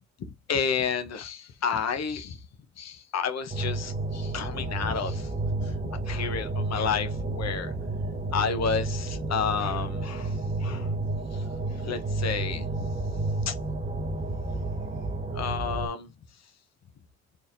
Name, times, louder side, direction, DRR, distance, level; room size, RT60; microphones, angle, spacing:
voice 1, 0.5-2.4 2.8-5.3 5.6-5.7 6.1-7.7 8.3-11.5 11.8-12.9 13.4-13.5 15.3-16.1, left 6 dB, 60° left, 1.1 m, -31 dB
sound 1, 3.5-15.9, right 2 dB, 25° right, 0.9 m, -31 dB
4.2 x 3.4 x 2.6 m
cardioid pair, 90°, 30 cm